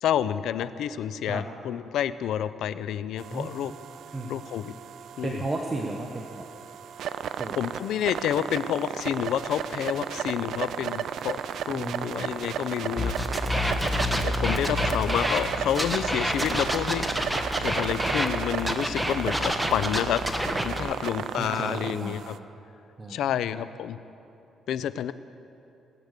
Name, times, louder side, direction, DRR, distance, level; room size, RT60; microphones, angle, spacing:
voice 1, 0.0-3.7 4.3-4.7 5.2-5.4 7.6-11.4 11.7-13.1 14.2-17.1 17.6-20.2 20.6-22.4 23.1-24.0 24.7-25.1, left 10 dB, 80° left, 15 dB, 0.5 m, -29 dB
sound 1, 3.2-22.4, right 9 dB, 70° right, 0.4 m, -34 dB
voice 2, 5.2-6.5 7.3-7.6 11.7-12.3 13.7-13.8 20.8-20.9 21.4-22.2 23.0-23.2, right 2 dB, 25° right, 1 dB, 1.1 m, -34 dB
sound 2, 13.0-18.3 18.6-20.8, left 1 dB, 5° right, 1.2 m, -27 dB
19.0 x 8.0 x 6.7 m, 2.8 s
cardioid pair, 90°, 0 cm